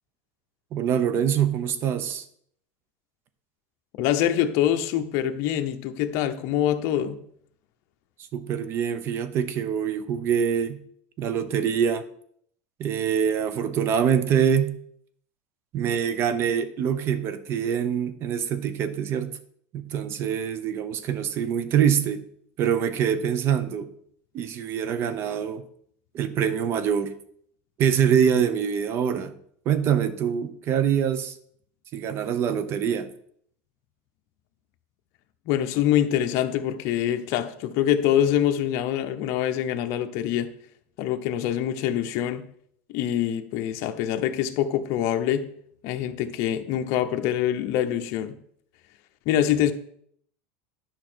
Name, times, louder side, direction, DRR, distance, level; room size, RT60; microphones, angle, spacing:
voice 1, 0.7-2.2 8.3-10.8 11.2-12.0 12.8-14.7 15.7-19.4 19.7-22.2 22.6-23.9 24.3-25.6 26.1-27.1 27.8-29.3 29.6-31.3 31.9-33.1, right 8 dB, 40° right, 0.9 m, -24 dB
voice 2, 4.0-7.2 35.5-40.5 41.0-42.5 42.9-45.5 45.8-48.4 49.3-49.7, left 11 dB, 55° left, 0.9 m, -25 dB
10.5 x 5.5 x 4.5 m
supercardioid pair, 140°, 7 cm